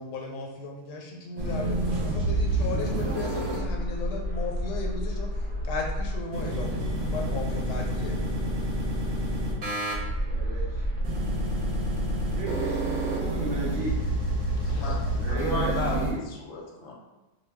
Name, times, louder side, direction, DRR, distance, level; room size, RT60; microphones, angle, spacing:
voice 1, 0.0-8.7, left 3 dB, 85° left, 0 dB, 1.2 m, -36 dB
sound 1, 1.4-16.1, right 1 dB, 60° right, 0.9 m, -28 dB
voice 2, 10.3-10.7 12.3-14.0 15.2-16.2, right 2 dB, 80° right, -5 dB, 0.6 m, -34 dB
voice 3, 14.6-16.9, left 3 dB, 60° left, -2 dB, 0.8 m, -35 dB
2.6 x 2.2 x 3.3 m, 1.1 s
omnidirectional pair, 1.8 m